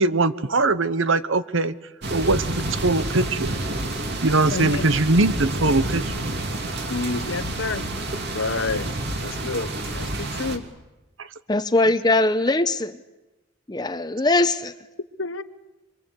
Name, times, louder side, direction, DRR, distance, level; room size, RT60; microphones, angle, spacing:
voice 1, 0.0-1.7 2.1-3.5 4.2-6.2, right 2 dB, 75° right, 14 dB, 1.1 m, -21 dB
sound 1, 2.0-10.6, right 1 dB, 55° right, 2.7 m, -29 dB
voice 2, 4.5-4.9 6.9-7.8 8.3-8.9 9.2-10.6 15.2-15.4, left 3 dB, 70° left, 13 dB, 1.1 m, -29 dB
voice 3, 11.5-13.0 13.7-14.7, left 2 dB, 20° left, 11 dB, 0.8 m, -21 dB
26.0 x 24.0 x 8.2 m, 1.1 s
head